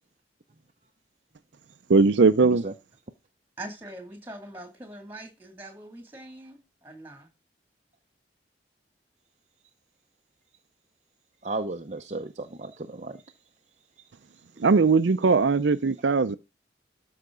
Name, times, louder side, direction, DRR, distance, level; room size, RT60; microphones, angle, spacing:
voice 1, 1.9-2.6 14.6-16.4, right 4 dB, 75° right, 0.5 m, -19 dB
voice 2, 2.4-2.7 11.4-13.3 14.3-14.7, right 2 dB, 40° right, 0.7 m, -35 dB
voice 3, 3.6-7.3, right 1 dB, 10° right, 2.6 m, -42 dB
13.5 x 5.7 x 3.8 m
head